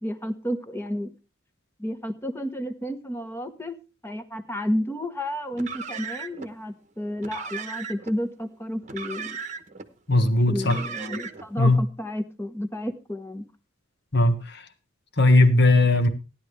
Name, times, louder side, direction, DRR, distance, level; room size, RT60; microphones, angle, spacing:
voice 1, 0.0-1.1 1.8-3.8 4.0-9.4 10.5-13.5, equal, 10° left, 1.0 m, -31 dB
Car, 5.5-6.5 7.2-8.1 8.8-9.9 10.6-11.5, right 5 dB, 35° right, 1.0 m, -36 dB
voice 2, 10.1-10.8 11.6-11.8 14.1-14.6 15.2-16.1, left 2 dB, 55° left, 1.5 m, -18 dB
16.0 x 10.5 x 3.3 m
head